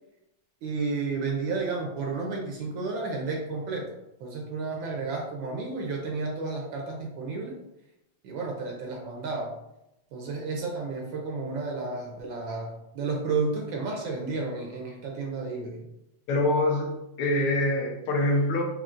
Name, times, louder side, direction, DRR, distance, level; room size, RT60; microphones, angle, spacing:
voice 1, 0.6-3.9 4.2-7.6 8.2-9.5 10.1-15.9, right 4 dB, 75° right, 0 dB, 1.3 m, -32 dB
voice 2, 16.3-18.6, left 1 dB, 85° left, 1 dB, 1.7 m, -25 dB
5.0 x 2.7 x 2.4 m, 0.87 s
omnidirectional pair, 2.3 m